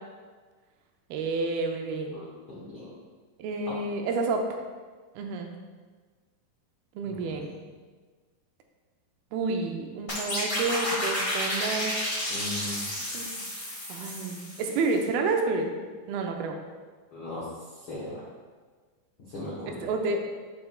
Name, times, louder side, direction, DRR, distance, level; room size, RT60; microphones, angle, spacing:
voice 1, 1.1-2.2 3.4-4.5 5.2-5.5 7.0-7.5 9.3-11.9 13.1-13.5 13.9-16.6 19.7-20.2, right 3 dB, 85° right, 3 dB, 2.6 m, -30 dB
voice 2, 2.1-2.9 3.6-3.7 7.1-7.7 12.3-12.9 17.1-17.5 17.7-18.2 19.3-19.9, left 1 dB, 85° left, -8 dB, 1.1 m, -39 dB
sound 1, 10.1-14.9, left 1 dB, 40° left, 0.8 m, -31 dB
7.7 x 5.6 x 2.3 m, 1.4 s
omnidirectional pair, 4.3 m